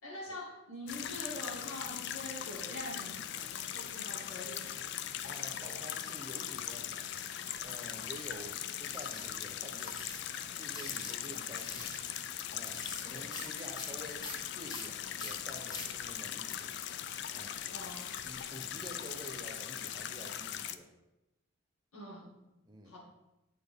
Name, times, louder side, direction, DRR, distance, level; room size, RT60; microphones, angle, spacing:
voice 1, 0.0-4.8 13.1-13.3 17.7-18.1 21.9-22.4 22.9-23.0, left 1 dB, 85° left, -4 dB, 2.2 m, -44 dB
sound 1, 0.9-20.8, left 10 dB, 55° left, 0.3 m, -40 dB
voice 2, 5.2-7.1 7.6-10.0 10.6-11.9 12.5-16.7 17.3-17.6 18.2-20.9 22.7-23.0, equal, 20° right, 2 dB, 0.8 m, -49 dB
sound 2, 7.7-8.1 8.9-9.3 9.8-10.2 10.7-11.2 11.5-12.0 12.7-13.0 13.3-13.5 13.8-15.9 16.5-19.1, left 2 dB, 20° left, 0.7 m, -46 dB
8.5 x 4.3 x 3.6 m, 0.96 s
head